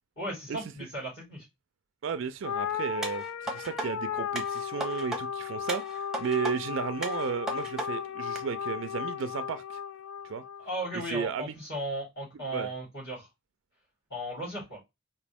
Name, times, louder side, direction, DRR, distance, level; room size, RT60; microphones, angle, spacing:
voice 1, 0.2-1.4 10.6-13.3 14.1-14.8, right 1 dB, 50° left, 3.3 m, -36 dB
voice 2, 2.0-9.8 10.2-10.4 11.1-11.5 12.5-12.7, right 6 dB, 60° right, 0.4 m, -33 dB
sound 1, 2.4-11.0, left 8 dB, 85° left, 0.4 m, -35 dB
sound 2, 3.0-3.9 4.4-5.2 5.7-6.5 7.0-7.9 8.4-8.5, right 2 dB, ahead, 0.8 m, -35 dB
5.0 x 2.6 x 3.5 m
head